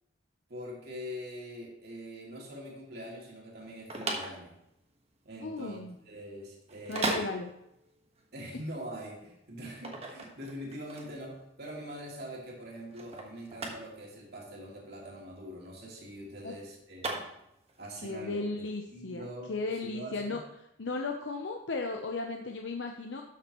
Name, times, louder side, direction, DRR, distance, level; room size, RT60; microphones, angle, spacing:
voice 1, 0.5-4.5 5.2-7.2 8.3-17.1 17.8-18.6 18.9-19.5 19.8-20.4, equal, 60° right, -2 dB, 2.6 m, -43 dB
sound 1, 3.6-17.8, right 2 dB, 35° right, 1.4 m, -39 dB
voice 2, 5.4-6.0 6.9-7.5 16.4-16.5 18.0-20.4 20.8-23.2, left 3 dB, 70° left, 3 dB, 0.7 m, -35 dB
12.5 x 6.8 x 3.0 m, 0.81 s
head